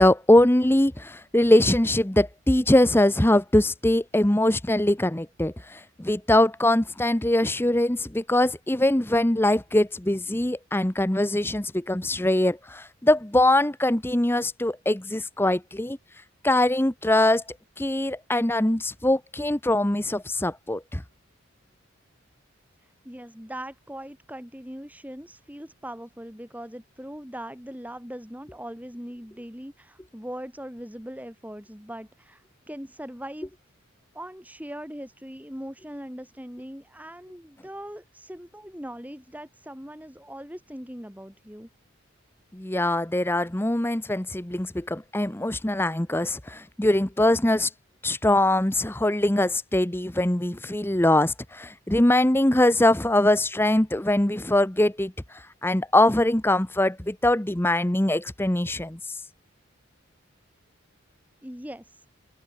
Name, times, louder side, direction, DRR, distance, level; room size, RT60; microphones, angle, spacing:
voice 1, 0.0-16.0 16.4-17.4 17.8-21.0 42.5-47.7 48.0-55.1 55.6-59.0, left 1 dB, 10° left, 0.8 m, -22 dB
voice 2, 22.8-33.5 34.1-41.7 61.4-62.0, equal, 10° right, 6.0 m, -40 dB
head